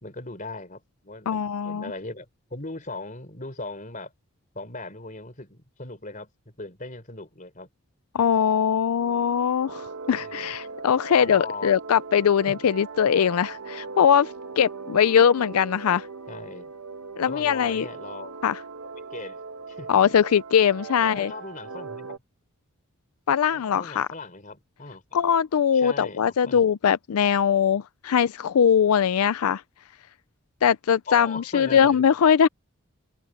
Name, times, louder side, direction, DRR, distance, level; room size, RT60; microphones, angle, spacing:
voice 1, 0.0-4.1 4.5-7.7 10.1-10.5 11.1-11.7 12.5-12.6 16.3-16.7 17.2-18.4 19.1-19.4 19.7-20.1 21.0-22.2 23.5-25.2 25.7-26.7 31.1-32.0, left 3 dB, 35° left, 4.2 m, -39 dB
voice 2, 1.3-1.9 8.1-16.1 17.2-17.9 18.4-18.6 19.9-21.3 23.3-24.1 25.1-29.6 30.6-32.5, left 8 dB, 85° left, 0.4 m, -21 dB
sound 1, 9.0-22.2, right 4 dB, 90° right, 1.2 m, -39 dB
head